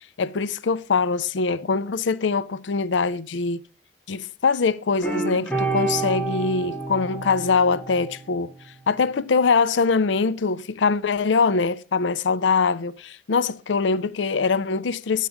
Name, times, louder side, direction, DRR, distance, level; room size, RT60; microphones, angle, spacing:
voice 1, 0.2-3.6 4.1-8.5 8.9-15.3, left 4 dB, 85° left, 0.5 m, -23 dB
sound 1, 5.0-8.5, right 3 dB, 5° left, 2.5 m, -28 dB
11.0 x 8.2 x 3.5 m
head